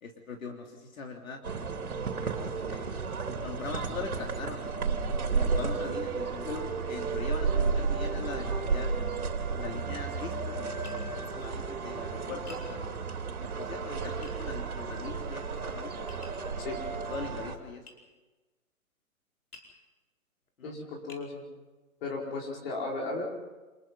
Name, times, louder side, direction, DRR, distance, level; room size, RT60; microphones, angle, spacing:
voice 1, 0.0-1.4 2.1-2.3 2.7-3.1 3.4-4.6 5.3-8.9 9.5-10.8 11.4-13.0 13.6-16.1 16.7-16.8 17.1-17.8 20.6-20.8, left 4 dB, 65° left, 2 dB, 3.3 m, -41 dB
sound 1, 1.4-17.6, right 5 dB, 75° right, 3.3 m, -32 dB
Tap, 10.8-11.0 12.5-12.7 14.2-14.4 16.1-16.4 17.9-18.0 19.5-19.8 20.5-20.6 21.1-21.3, left 2 dB, 90° left, 5.0 m, -50 dB
voice 2, 20.6-21.4 22.0-23.2, left 3 dB, 40° left, -1 dB, 5.0 m, -35 dB
27.0 x 20.5 x 5.6 m, 1.2 s
hypercardioid pair, 140°, 43 cm